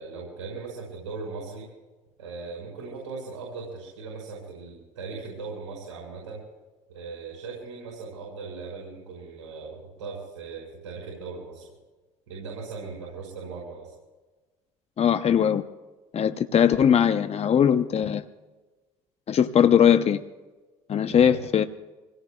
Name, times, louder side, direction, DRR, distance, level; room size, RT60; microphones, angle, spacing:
voice 1, 0.0-1.7 2.2-6.4 6.9-11.7 12.3-13.9 21.1-21.4, right 4 dB, 85° right, -2 dB, 5.7 m, -38 dB
voice 2, 15.0-15.6 16.1-18.3 19.3-20.2 20.9-21.6, left 8 dB, 40° left, 10 dB, 0.8 m, -20 dB
27.0 x 17.5 x 2.4 m, 1.2 s
hypercardioid pair, 65°, 16 cm